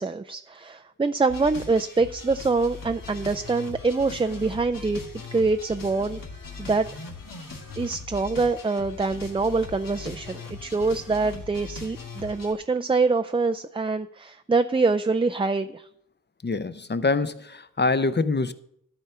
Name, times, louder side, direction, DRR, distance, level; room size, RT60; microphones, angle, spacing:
voice 1, 0.0-5.0 5.3-6.2 6.6-6.9 7.8-15.9, right 3 dB, 15° right, 0.3 m, -25 dB
sound 1, 1.3-12.5, left 4 dB, 85° left, 1.7 m, -40 dB
voice 2, 16.4-18.5, left 3 dB, 35° left, 0.6 m, -25 dB
12.5 x 4.4 x 6.7 m
wide cardioid pair, 65°, 32 cm